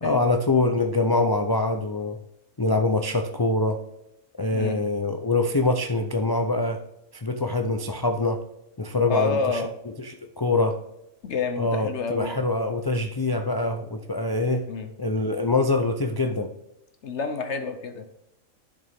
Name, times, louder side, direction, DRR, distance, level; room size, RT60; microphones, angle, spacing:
voice 1, 0.0-2.2 2.6-3.8 4.4-6.8 7.1-8.4 8.8-9.6 10.0-10.8 11.6-14.7 15.0-16.5, left 2 dB, 35° left, 5 dB, 0.3 m, -24 dB
voice 2, 9.1-9.7 11.2-12.3 14.7-14.9 17.0-18.0, left 4 dB, 60° left, 7 dB, 1.1 m, -28 dB
11.0 x 6.6 x 3.5 m, 0.85 s
omnidirectional pair, 1.4 m